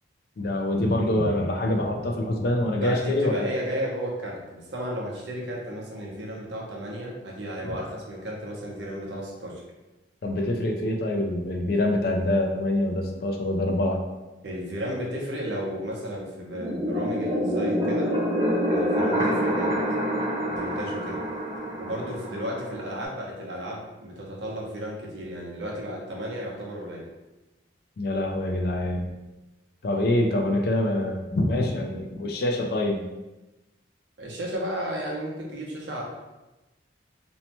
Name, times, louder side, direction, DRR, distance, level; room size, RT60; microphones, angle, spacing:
voice 1, 0.4-3.5 10.2-14.1 28.0-29.1 29.8-33.1, left 1 dB, 55° left, 3 dB, 0.3 m, -25 dB
voice 2, 2.8-9.6 14.4-18.1 18.7-19.8 20.5-21.2 21.8-27.1 34.2-36.0, equal, 70° right, -3 dB, 0.7 m, -33 dB
sound 1, 16.5-23.1, equal, 20° right, 0.6 m, -27 dB
2.7 x 2.1 x 2.9 m, 1.1 s
head